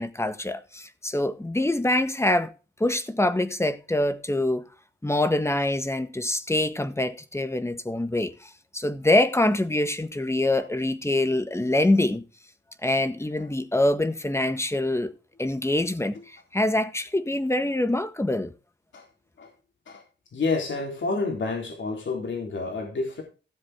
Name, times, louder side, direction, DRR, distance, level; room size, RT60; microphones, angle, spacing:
voice 1, 0.0-2.5 2.8-4.6 5.0-12.2 12.8-15.1 15.4-18.5, left 1 dB, 15° left, 1.7 m, -25 dB
voice 2, 20.3-23.2, left 3 dB, 80° left, 3.7 m, -29 dB
16.5 x 7.4 x 3.6 m
cardioid pair, 80°, 19 cm